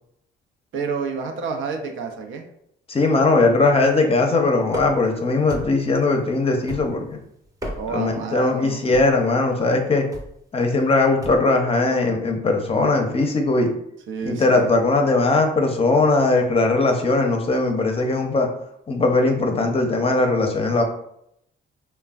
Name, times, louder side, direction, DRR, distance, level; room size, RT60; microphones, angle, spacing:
voice 1, 0.7-2.4 7.8-8.8 14.1-14.7, right 5 dB, 80° right, 3 dB, 0.5 m, -29 dB
voice 2, 2.9-7.2 7.9-10.1 10.5-13.7 14.2-18.5 18.9-20.8, left 3 dB, 30° left, 3 dB, 0.6 m, -19 dB
sound 1, 4.7-5.1 5.5-6.0 6.7-7.1 7.5-8.1 8.9-9.2 10.1-10.4 11.2-11.5, equal, 15° right, 0.7 m, -34 dB
3.2 x 2.1 x 2.3 m, 0.73 s
cardioid pair, 90°, 20 cm